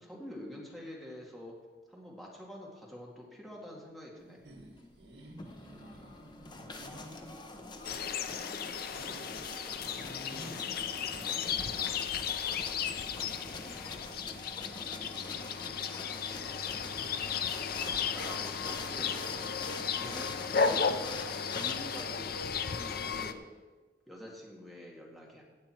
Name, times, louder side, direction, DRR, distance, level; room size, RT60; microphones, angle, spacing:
voice 1, 0.0-1.5 1.9-4.4 10.3-10.6 17.7-19.2 20.0-20.3 20.6-21.2 21.5-23.4 24.1-25.4, left 1 dB, ahead, -3 dB, 2.1 m, -46 dB
sound 1, 4.4-20.2, right 1 dB, 80° right, 2.1 m, -54 dB
sound 2, 5.2-22.0, left 2 dB, 25° left, 0.9 m, -45 dB
voice 2, 5.8-6.4 6.9-9.4 9.8-16.6, left 2 dB, 80° left, -4 dB, 3.1 m, -58 dB
sound 3, 7.8-23.3, left 6 dB, 55° left, 0.6 m, -35 dB
16.0 x 8.5 x 4.5 m, 1.4 s
head